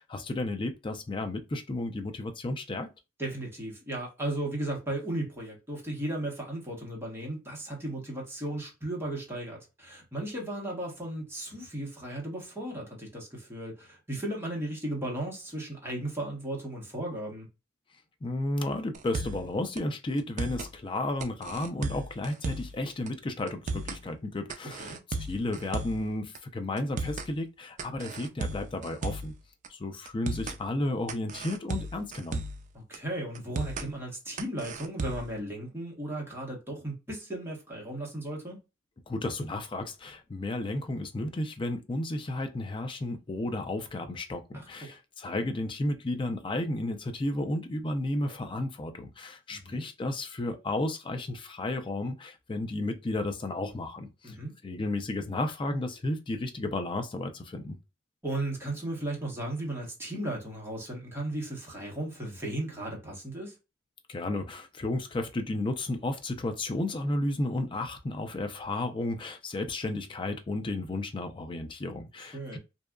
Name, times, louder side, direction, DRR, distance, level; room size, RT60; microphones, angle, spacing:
voice 1, 0.0-2.9 18.2-29.3 29.7-32.4 39.1-54.4 54.6-57.8 64.1-72.6, left 2 dB, 25° left, 0.4 m, -33 dB
voice 2, 3.2-17.5 24.8-25.0 32.7-38.6 44.5-44.9 48.2-48.4 49.5-49.8 54.2-54.5 58.2-63.5 72.3-72.6, right 1 dB, 15° right, 1.0 m, -35 dB
sound 1, 18.9-19.5 19.8-19.9 20.2-20.7 21.2-22.8 23.1-23.2 23.5-24.0 24.5-26.1 26.3-26.4 26.8-27.3 27.8-29.4 29.6-29.7 30.1-30.6 31.1-32.7 32.9-33.0 33.3-33.9 34.4-35.3, right 3 dB, 40° right, 0.3 m, -35 dB
2.7 x 2.3 x 2.2 m
head